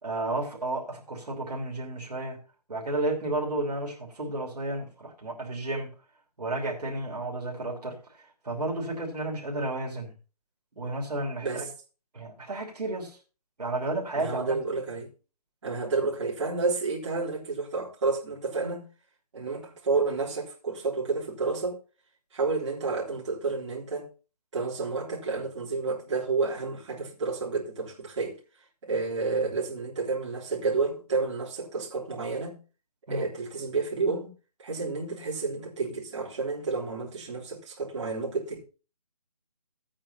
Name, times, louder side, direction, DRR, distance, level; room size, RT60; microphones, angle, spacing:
voice 1, 0.0-2.4 2.7-5.9 6.4-8.0 8.4-10.1 10.8-11.7 12.1-13.2 13.6-14.6 33.1-33.3, right 2 dB, 85° right, 3.0 m, -32 dB
voice 2, 14.2-15.1 15.6-18.9 19.3-21.8 22.3-24.1 24.5-28.4 28.8-32.6 33.1-34.3 34.6-38.6, right 4 dB, 45° right, 3.6 m, -30 dB
16.0 x 8.8 x 2.9 m
hypercardioid pair, 160°, 20 cm